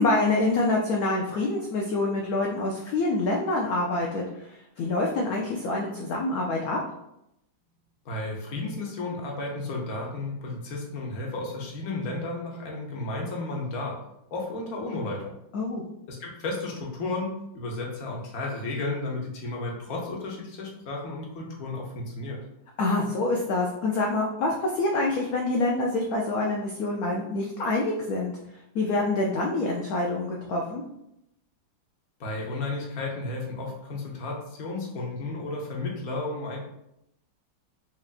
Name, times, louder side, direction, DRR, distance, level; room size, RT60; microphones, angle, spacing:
voice 1, 0.0-4.2 4.8-6.8 15.5-15.8 22.8-28.3 28.7-30.8, left 2 dB, 90° left, -1 dB, 0.7 m, -26 dB
voice 2, 8.0-14.0 14.3-15.3 16.1-22.4 32.2-36.6, left 2 dB, 55° left, -2 dB, 1.1 m, -33 dB
4.5 x 2.9 x 2.4 m, 0.82 s
omnidirectional pair, 2.1 m